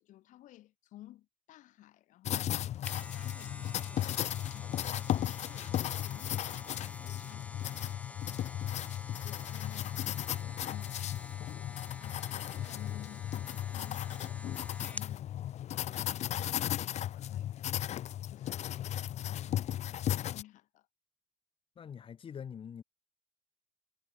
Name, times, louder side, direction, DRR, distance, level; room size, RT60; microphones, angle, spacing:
voice 1, 0.0-3.8 4.4-9.0 9.2-18.0 18.3-18.9 19.1-20.9, left 14 dB, 90° left, 1.0 m, -55 dB
sound 1, 2.3-20.4, left 11 dB, 60° left, 0.5 m, -36 dB
sound 2, 2.6-15.2 15.6-15.7, left 2 dB, 10° left, 0.5 m, -49 dB
voice 2, 4.6-5.1 21.8-22.8, left 7 dB, 45° left, 1.1 m, -46 dB
cardioid pair, 115°, 13 cm